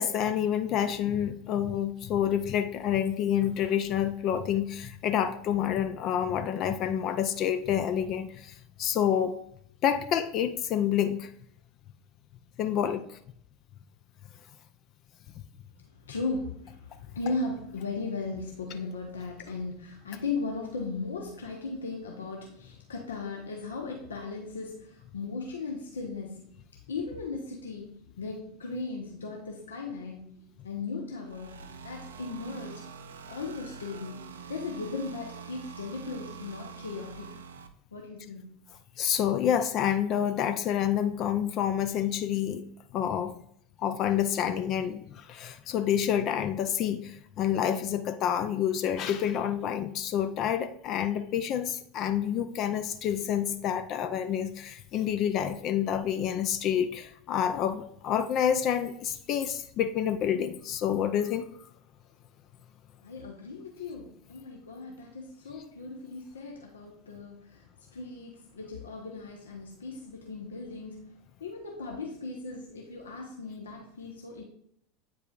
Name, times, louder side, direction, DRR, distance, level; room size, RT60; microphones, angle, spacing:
voice 1, 0.0-9.3 9.8-11.3 12.6-13.0 39.0-42.6 42.9-43.3 43.8-61.5, left 9 dB, 45° left, 9 dB, 0.4 m, -28 dB
voice 2, 15.9-26.5 26.9-32.9 33.3-37.4 37.9-38.6 63.0-71.1 71.4-74.4, left 3 dB, 75° left, 1 dB, 0.9 m, -37 dB
sound 1, 31.2-37.7, right 6 dB, 70° right, 0.5 m, -45 dB
8.7 x 4.7 x 2.4 m, 0.71 s
figure-of-eight pair, 80°, 0 cm